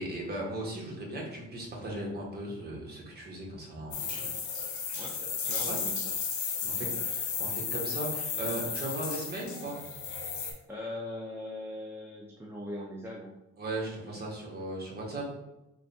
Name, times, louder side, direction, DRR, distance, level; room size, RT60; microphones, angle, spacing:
voice 1, 0.0-4.3 5.6-5.8 6.4-9.8 13.6-15.2, right 1 dB, 30° right, -2 dB, 1.2 m, -37 dB
sound 1, 3.9-10.5, left 5 dB, 85° left, 1.0 m, -34 dB
voice 2, 4.6-5.2 5.5-6.0 6.6-7.1 7.4-7.6 10.7-13.3 14.0-14.3, left 1 dB, 10° right, -2 dB, 0.5 m, -41 dB
3.4 x 2.3 x 4.2 m, 0.92 s
cardioid pair, 90°, 30 cm